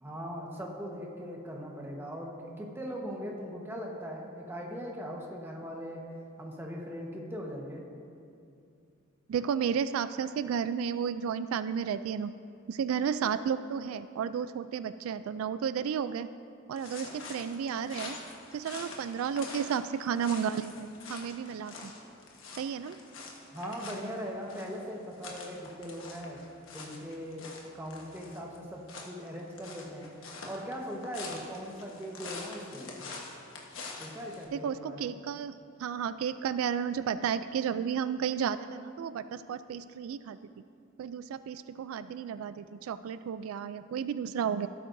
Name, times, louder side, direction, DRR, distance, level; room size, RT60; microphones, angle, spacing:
voice 1, 0.0-6.0 6.4-7.8 23.5-26.4 26.7-30.1 30.4-33.0 34.0-35.2, equal, 10° right, -1 dB, 1.2 m, -40 dB
voice 2, 9.3-12.3 12.7-16.3 16.7-18.2 18.5-21.9 22.6-23.0 34.5-35.5 35.8-40.4 41.0-44.7, right 7 dB, 85° right, 14 dB, 0.3 m, -32 dB
sound 1, 16.8-34.4, left 3 dB, 70° left, 1.3 m, -46 dB
16.5 x 8.5 x 2.7 m, 2.5 s
head